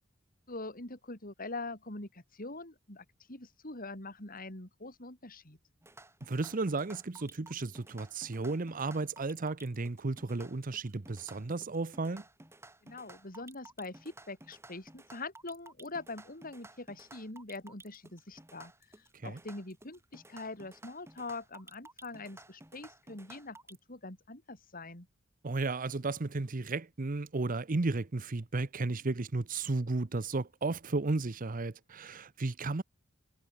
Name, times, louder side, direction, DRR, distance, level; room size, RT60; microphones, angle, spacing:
voice 1, 0.5-5.6 12.8-18.7 19.0-23.6 23.9-25.1, left 2 dB, 45° left, 5.4 m, -43 dB
sound 1, 5.8-23.8, right 2 dB, 15° right, 4.2 m, -54 dB
voice 2, 6.3-12.2 19.2-19.4 25.4-32.8, right 3 dB, 45° right, 0.8 m, -34 dB
head